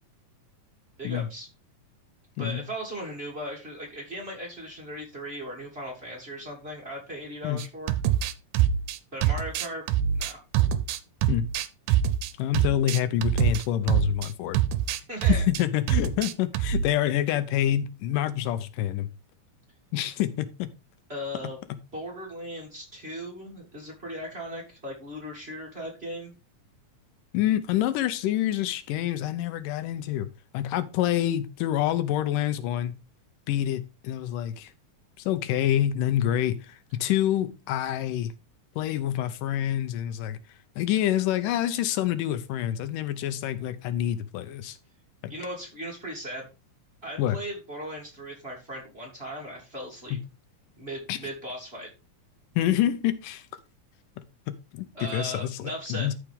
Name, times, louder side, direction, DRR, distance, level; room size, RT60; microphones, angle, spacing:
voice 1, 1.0-1.5 2.4-7.9 9.1-9.8 10.1-10.4 15.1-15.4 21.1-21.6 21.9-26.3 45.3-46.5 47.0-50.2 50.8-51.9 54.9-56.1, equal, 20° right, 2.7 m, -37 dB
sound 1, 7.6-14.3 14.5-15.6 15.9-16.9, right 10 dB, 80° right, 2.2 m, -24 dB
voice 2, 12.4-14.6 15.3-19.1 19.9-20.7 27.3-30.3 30.5-32.9 33.5-34.7 35.3-38.3 38.8-40.4 40.8-44.8 45.2-45.3 47.2-47.4 50.1-50.2 51.1-51.2 52.6-53.5 54.7-54.9 55.1-56.1, left 12 dB, 90° left, 2.4 m, -27 dB
13.0 x 4.9 x 3.6 m
omnidirectional pair, 3.7 m